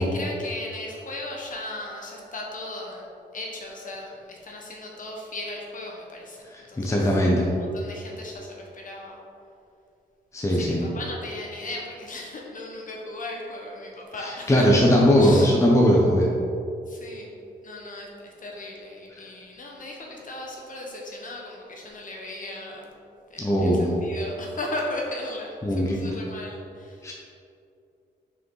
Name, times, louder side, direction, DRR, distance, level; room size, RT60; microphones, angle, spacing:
voice 1, 0.0-3.1 3.3-7.1 7.5-9.2 10.5-14.9 15.2-15.5 16.9-17.3 17.6-22.9 23.3-27.1, left 2 dB, 50° left, -1 dB, 1.2 m, -37 dB
voice 2, 6.5-7.5 10.3-10.8 14.2-16.3 19.2-19.3 23.4-23.9 25.6-26.1 27.0-27.1, equal, 15° left, -2 dB, 0.7 m, -20 dB
5.8 x 4.9 x 3.9 m, 2.6 s
cardioid pair, 110°, 18 cm